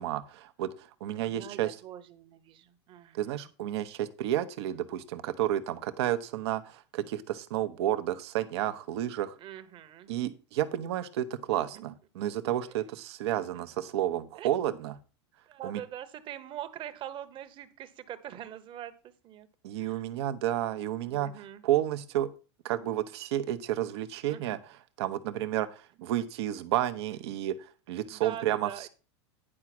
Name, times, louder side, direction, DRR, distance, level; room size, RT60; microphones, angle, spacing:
voice 1, 0.0-1.8 3.1-9.4 10.1-14.9 15.6-15.8 19.6-22.3 22.6-28.9, right 12 dB, 65° right, 10 dB, 1.0 m, -31 dB
voice 2, 1.2-3.4 9.4-10.1 11.7-11.9 12.7-12.8 14.4-14.5 15.5-18.9 19.2-19.5 19.7-20.0 21.1-21.6 24.3-24.6 26.0-26.1 28.1-28.9, right 11 dB, 35° right, 10 dB, 1.2 m, -43 dB
10.0 x 4.9 x 6.1 m, 0.34 s
supercardioid pair, 130°, 15 cm